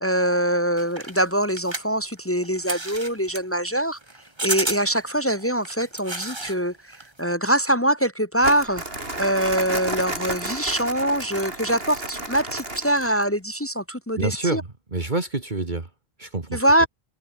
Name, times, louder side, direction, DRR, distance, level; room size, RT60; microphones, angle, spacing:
voice 1, 0.0-4.0 4.4-8.8 9.2-14.6 16.5-16.9, right 1 dB, 15° left, 1.3 m, -23 dB
sound 1, 0.8-6.6 6.9-7.3, right 2 dB, 25° right, 2.2 m, -32 dB
Crumpling crinkling, 8.4-13.3, right 2 dB, 70° right, 5.4 m, -32 dB
voice 2, 14.2-15.9 16.2-16.6, right 3 dB, 45° right, 2.4 m, -27 dB
omnidirectional pair, 1.1 m